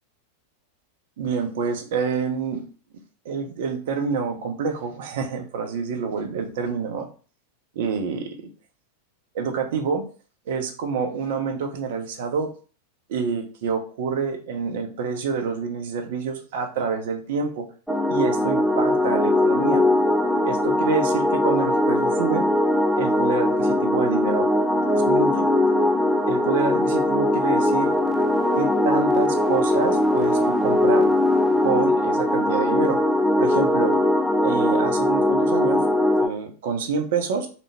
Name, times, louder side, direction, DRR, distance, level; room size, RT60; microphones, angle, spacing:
voice 1, 1.2-2.7 3.2-7.1 7.7-8.4 9.3-10.0 10.5-12.5 13.1-17.7 18.1-19.8 20.4-22.5 23.0-24.5 24.9-25.5 26.3-27.9 28.6-31.1 31.6-33.0 33.4-34.0 34.4-35.8 36.2-37.5, right 5 dB, 55° right, 4 dB, 0.6 m, -27 dB
sound 1, 17.9-36.3, left 1 dB, ahead, 0.3 m, -20 dB
3.3 x 2.1 x 3.3 m, 0.38 s
figure-of-eight pair, 90°, 0 cm